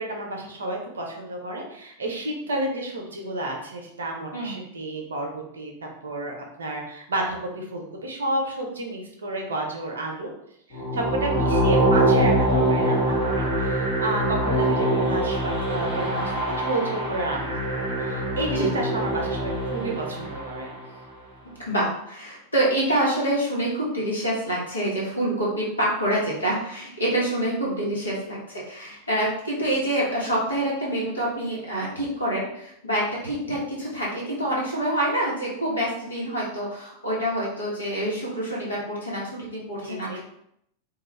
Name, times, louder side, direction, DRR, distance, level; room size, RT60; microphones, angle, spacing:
voice 1, 0.0-5.7 6.0-10.3 10.7-20.7 28.9-29.0 39.8-40.2, right 1 dB, 70° right, 1 dB, 0.6 m, -31 dB
sound 1, 10.7-20.9, right 1 dB, 40° left, 0.8 m, -24 dB
voice 2, 21.6-40.2, right 1 dB, 80° left, -6 dB, 1.1 m, -26 dB
2.3 x 2.3 x 3.2 m, 0.76 s
figure-of-eight pair, 90°, 0 cm